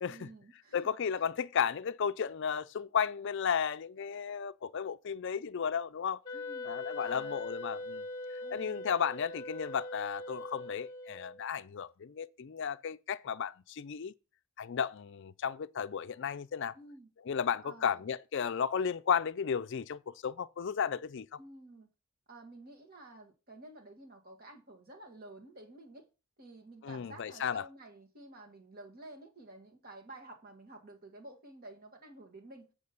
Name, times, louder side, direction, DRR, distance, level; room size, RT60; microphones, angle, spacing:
voice 1, 0.1-1.0 6.3-6.7 7.0-7.5 8.4-8.8 16.7-17.1 17.6-18.0 21.4-21.9 22.3-26.1 26.4-32.7, right 2 dB, 40° right, 1.8 m, -51 dB
voice 2, 0.7-6.2 6.6-8.0 8.5-14.1 14.6-16.7 17.3-21.3 26.8-27.6, left 7 dB, 55° left, 0.4 m, -34 dB
Wind instrument woodwind instrument, 6.3-11.4, left 2 dB, 20° left, 1.7 m, -41 dB
8.6 x 5.1 x 5.4 m
head